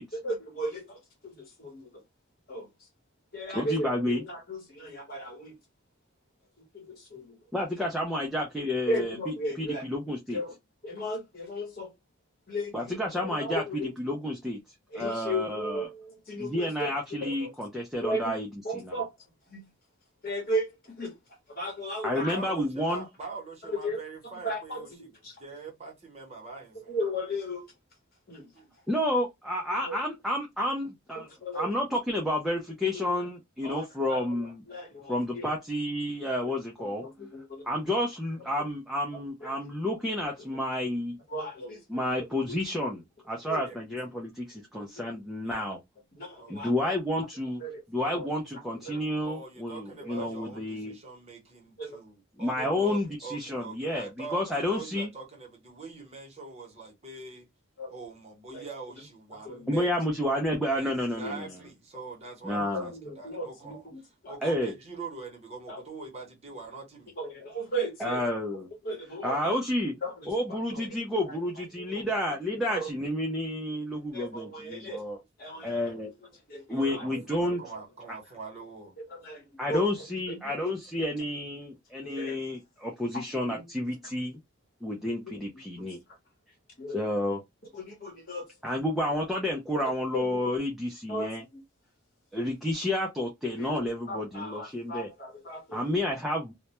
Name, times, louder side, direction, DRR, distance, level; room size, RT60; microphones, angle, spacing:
voice 1, 0.1-2.0 2.5-2.9 3.3-5.6 6.6-7.2 8.9-9.8 10.3-10.5 10.8-11.9 12.5-13.9 14.9-17.5 18.0-18.4 18.6-19.2 19.5-19.7 20.2-21.1 21.5-22.4 23.6-24.0 24.2-25.4 26.9-27.6 28.3-28.5 29.7-30.2 31.1-31.9 32.9-33.3 33.6-35.5 36.4-37.7 38.6-38.7 39.1-39.6 41.3-42.6 43.4-43.6 44.7-45.1 46.2-46.9 47.6-49.0 50.0-50.3 51.8-52.0 52.5-52.8 54.6-54.7 57.8-57.9 58.5-58.7 59.0-59.1 59.3-59.8 61.2-61.3 62.6-64.4 65.7-65.8 67.2-68.2 68.5-69.5 70.0-71.4 71.8-73.1 74.1-75.0 75.4-75.9 76.5-77.6 79.0-80.8 82.0-82.4 83.1-83.2 83.5-83.7 85.3-85.9 86.8-87.0 87.7-88.5 89.8-90.6 91.1-91.6 93.4-95.9, equal, 45° left, 0.9 m, -37 dB
voice 2, 3.5-4.2 7.5-9.2 9.9-10.4 12.7-13.6 14.0-14.6 15.0-15.9 16.4-18.5 18.8-18.9 22.0-23.1 28.9-31.3 31.5-34.6 35.1-37.0 37.7-41.2 41.9-43.0 43.3-45.8 46.5-47.6 47.9-50.9 52.4-55.1 59.7-61.5 62.4-62.9 64.4-64.7 68.0-68.7 69.2-69.9 70.3-75.2 75.6-76.1 76.7-77.6 79.6-84.4 84.8-86.0 86.9-87.4 88.6-91.4 92.3-95.1 95.7-96.5, left 1 dB, ahead, 0.3 m, -30 dB
voice 3, 22.1-24.9 25.4-27.0 28.5-28.7 43.6-43.8 45.4-45.7 46.4-46.7 49.2-57.5 57.9-59.9 60.7-63.9 64.3-67.1 75.5-76.0 76.7-78.9 79.3-79.4, right 4 dB, 30° right, 0.8 m, -43 dB
2.1 x 2.1 x 2.7 m
head